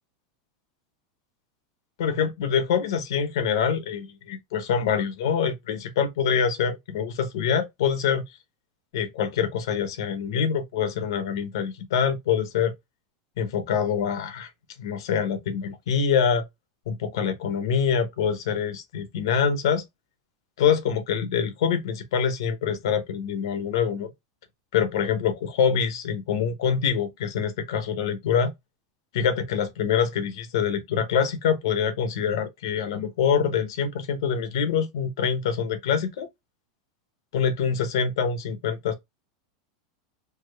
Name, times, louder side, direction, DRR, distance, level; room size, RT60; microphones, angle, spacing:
voice 1, 2.0-8.2 8.9-12.7 13.4-14.5 14.8-16.4 16.9-19.8 20.6-24.1 24.7-28.5 29.1-36.3 37.3-38.9, left 7 dB, 75° left, 1.0 m, -25 dB
3.5 x 2.1 x 3.3 m
supercardioid pair, 165°, 2 cm